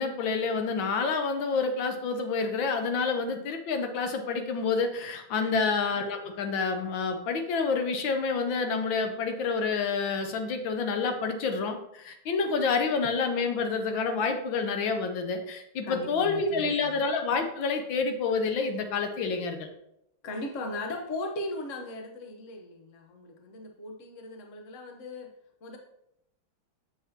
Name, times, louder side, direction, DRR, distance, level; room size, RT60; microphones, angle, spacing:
voice 1, 0.0-19.7, left 4 dB, 80° left, 6 dB, 1.5 m, -28 dB
voice 2, 15.8-17.0 20.2-25.3 25.6-25.8, left 2 dB, 50° left, 3 dB, 1.1 m, -38 dB
7.2 x 7.1 x 2.8 m, 0.78 s
omnidirectional pair, 2.1 m